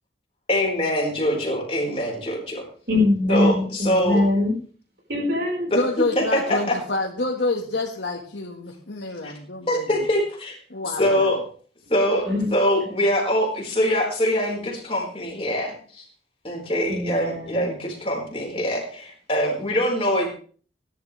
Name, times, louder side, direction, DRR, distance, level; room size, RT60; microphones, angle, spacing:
voice 1, 0.5-2.6 3.3-4.2 6.2-6.8 9.2-9.3 9.7-10.6 10.8-11.4 11.9-16.0 16.4-20.3, equal, 35° left, -1 dB, 4.7 m, -23 dB
voice 2, 2.9-4.5 5.1-5.8 6.4-6.6 12.2-12.5 13.8-14.0 16.9-17.7, left 2 dB, 60° right, -1 dB, 4.7 m, -23 dB
voice 3, 5.7-10.0 10.7-11.3, left 2 dB, 85° left, -1 dB, 1.7 m, -28 dB
19.0 x 11.0 x 3.4 m, 0.43 s
head